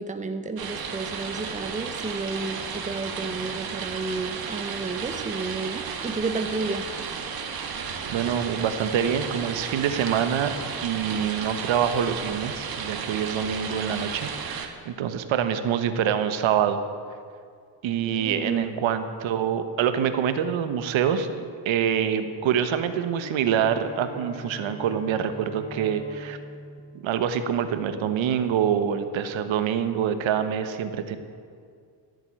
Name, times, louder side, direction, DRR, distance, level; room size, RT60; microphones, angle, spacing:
voice 1, 0.0-6.9 18.1-18.8, right 3 dB, 15° right, 8 dB, 0.9 m, -32 dB
sound 1, 0.6-14.7, right 6 dB, 50° right, 1.7 m, -33 dB
voice 2, 8.1-16.8 17.8-26.4 27.0-31.2, right 8 dB, 75° right, 10 dB, 1.2 m, -26 dB
Bowed string instrument, 22.4-27.9, left 1 dB, 15° left, 2.8 m, -44 dB
15.0 x 8.1 x 9.1 m, 2.2 s
cardioid pair, 125°, 47 cm